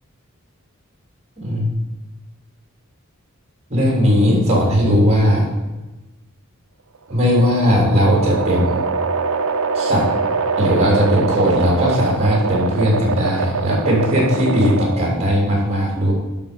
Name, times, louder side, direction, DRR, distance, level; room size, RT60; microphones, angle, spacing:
voice 1, 3.7-5.4 7.1-8.8 9.7-10.1 10.6-16.1, equal, 30° right, -2 dB, 3.4 m, -17 dB
sound 1, 7.0-15.2, right 4 dB, 75° right, 0.6 m, -23 dB
12.0 x 5.6 x 5.3 m, 1.1 s
head